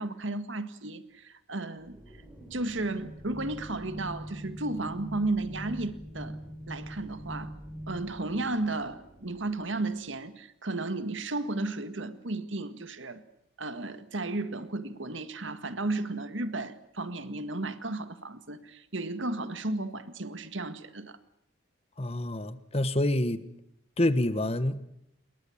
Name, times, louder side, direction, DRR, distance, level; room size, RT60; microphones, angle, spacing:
voice 1, 0.0-2.0 2.5-6.4 6.7-7.5 7.9-13.2 13.6-21.2, right 2 dB, 70° right, 1.9 m, -34 dB
sound 1, 1.8-10.0, equal, 10° right, 5.8 m, -43 dB
voice 2, 22.0-23.4 24.0-24.8, left 1 dB, 30° left, 1.3 m, -27 dB
28.5 x 22.0 x 7.3 m
head